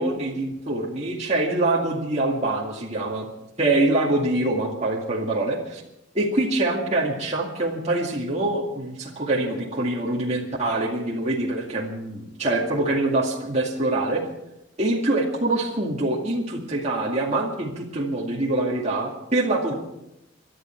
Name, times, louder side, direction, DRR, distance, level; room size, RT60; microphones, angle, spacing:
voice 1, 0.0-3.3 3.6-5.8 6.1-14.2 14.8-19.7, right 2 dB, 35° right, -3 dB, 2.2 m, -24 dB
23.0 x 12.0 x 4.5 m, 0.87 s
head